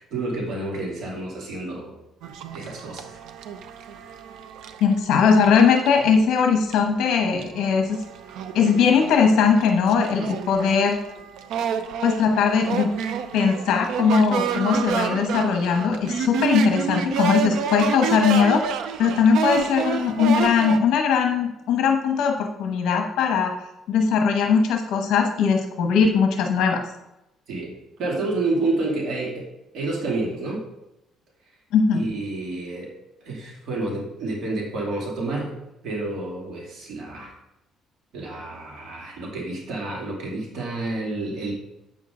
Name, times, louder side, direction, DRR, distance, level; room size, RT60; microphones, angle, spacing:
voice 1, 0.0-1.9 2.5-3.2 27.5-29.5 29.7-30.6 31.9-32.9 33.2-35.6 35.8-37.3 38.1-41.5, right 2 dB, 60° right, -2 dB, 2.7 m, -29 dB
sound 1, 2.2-6.1 6.7-6.8 7.1-20.8, right 7 dB, 75° right, 0.7 m, -29 dB
voice 2, 4.8-8.0 8.5-11.0 12.0-12.9 13.3-18.7 19.0-23.5 23.9-26.8 31.7-32.0, left 6 dB, 75° left, 3 dB, 1.1 m, -20 dB
8.9 x 7.2 x 3.8 m, 0.90 s
cardioid pair, 170°, 0 cm